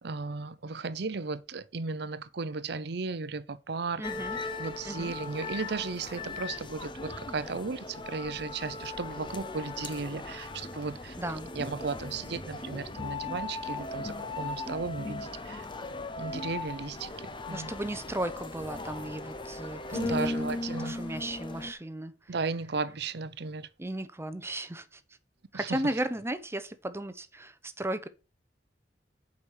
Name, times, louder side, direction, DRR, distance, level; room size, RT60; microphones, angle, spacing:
voice 1, 0.0-4.0 4.6-11.1 11.6-15.7 16.2-17.1 17.5-17.7 19.9-20.9 22.3-23.7, right 4 dB, 65° right, 0.7 m, -35 dB
sound 1, 4.0-21.7, left 3 dB, 30° left, 0.9 m, -38 dB
voice 2, 4.0-4.4 4.8-5.1 11.2-11.5 17.5-20.5 20.8-22.4 23.8-25.0 25.5-28.1, right 1 dB, 15° right, 0.8 m, -35 dB
7.2 x 5.3 x 6.4 m
head